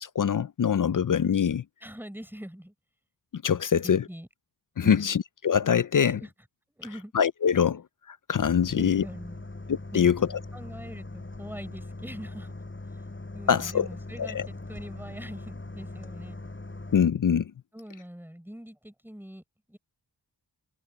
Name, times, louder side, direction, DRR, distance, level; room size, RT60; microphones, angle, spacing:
voice 1, 0.0-1.6 3.3-4.0 4.8-6.2 7.1-9.0 9.7-10.4 13.5-13.9 14.2-14.5 16.9-17.5, left 7 dB, 50° left, 0.6 m, -24 dB
voice 2, 1.8-2.7 3.8-4.3 4.8-5.1 6.1-6.3 6.7-7.1 8.4-10.1 10.5-12.6 12.9-16.4 17.7-19.4 19.7-19.8, equal, 5° right, 6.8 m, -43 dB
sound 1, 8.3-17.1, left 2 dB, 25° left, 6.4 m, -41 dB
wide cardioid pair, 75°, 43 cm